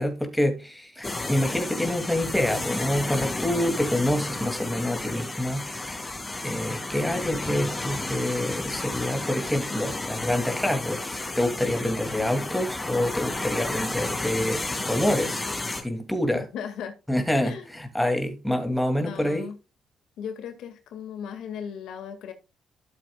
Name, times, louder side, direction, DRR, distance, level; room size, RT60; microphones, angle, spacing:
voice 1, 0.0-6.1 6.4-15.4 15.8-16.4 17.1-19.5, left 1 dB, 5° left, 2.5 m, -27 dB
sound 1, 1.0-15.8, left 2 dB, 20° left, 2.3 m, -32 dB
voice 2, 16.5-17.0 17.4-17.8 19.0-19.6 20.2-22.3, left 7 dB, 80° left, 2.0 m, -37 dB
13.0 x 7.6 x 2.3 m
cardioid pair, 90°, 0 cm